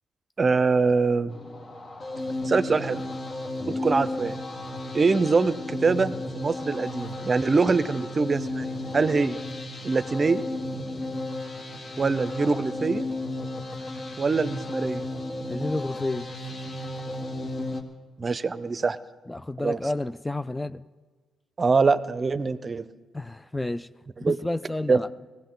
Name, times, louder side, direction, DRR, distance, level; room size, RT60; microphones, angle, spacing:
voice 1, 0.4-1.4 2.4-3.0 3.7-4.4 4.9-9.4 9.8-10.4 12.0-13.1 14.2-15.1 18.2-19.0 19.6-19.8 21.6-22.8 24.2-24.4 24.9-25.0, right 4 dB, 35° right, 14 dB, 0.7 m, -24 dB
sound 1, 1.3-17.8, left 1 dB, 40° left, 2.1 m, -34 dB
voice 2, 15.5-16.3 19.3-20.8 23.1-23.9 24.3-25.1, left 2 dB, 10° left, 13 dB, 0.4 m, -30 dB
19.5 x 16.5 x 3.9 m, 1.4 s
cardioid pair, 90°, 0 cm